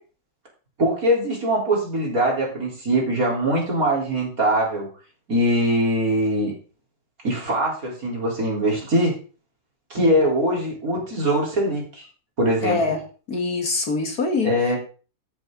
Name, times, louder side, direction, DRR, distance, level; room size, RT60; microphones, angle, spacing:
voice 1, 0.8-4.9 5.3-6.5 7.2-9.2 9.9-12.1 12.4-12.9 14.4-14.8, right 1 dB, 45° right, -2 dB, 4.3 m, -22 dB
voice 2, 12.6-13.0 13.3-14.5, left 3 dB, 55° left, 4 dB, 2.1 m, -23 dB
13.5 x 9.0 x 3.9 m, 0.37 s
omnidirectional pair, 2.1 m